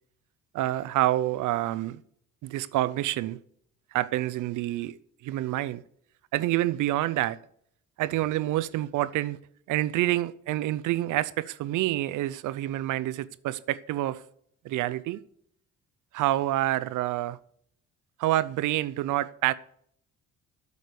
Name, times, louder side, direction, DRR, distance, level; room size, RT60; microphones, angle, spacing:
voice 1, 0.5-2.0 2.4-3.4 3.9-5.8 6.3-7.4 8.0-9.4 9.7-14.2 14.6-15.2 16.1-17.4 18.2-19.5, right 15 dB, 85° right, 0.7 m, -27 dB
8.6 x 8.3 x 6.8 m
cardioid pair, 90°, 30 cm